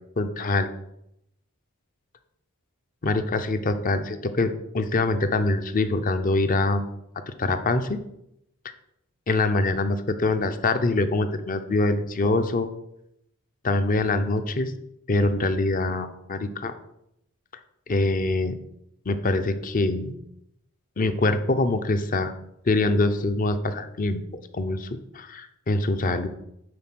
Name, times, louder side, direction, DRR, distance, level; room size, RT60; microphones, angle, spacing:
voice 1, 0.2-0.7 3.0-6.9 7.4-8.0 9.3-12.7 13.6-14.7 15.1-16.8 17.9-18.6 19.1-20.1 21.0-22.3 22.6-26.3, left 2 dB, 40° left, 9 dB, 0.7 m, -24 dB
9.7 x 3.8 x 6.2 m, 0.81 s
head